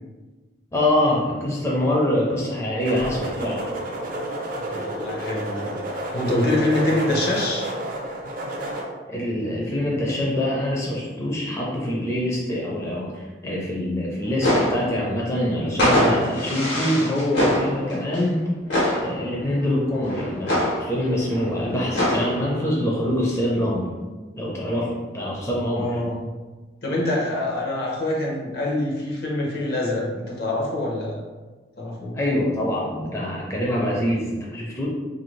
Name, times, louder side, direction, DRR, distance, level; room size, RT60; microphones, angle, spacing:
voice 1, 0.7-3.6 9.1-18.5 18.9-23.9 24.4-26.0 32.1-34.9, left 1 dB, 15° left, -4 dB, 0.5 m, -24 dB
sound 1, 2.8-8.8, right 1 dB, 50° right, 0.5 m, -30 dB
voice 2, 4.7-5.7 6.1-7.7 25.8-26.2 26.8-31.2 31.8-32.2, left 1 dB, 60° left, -2 dB, 0.7 m, -25 dB
sound 2, 14.2-15.4 15.7-18.4 18.7-19.5 19.9-22.5, left 1 dB, 85° left, 1.2 m, -24 dB
2.7 x 2.6 x 3.1 m, 1.3 s
head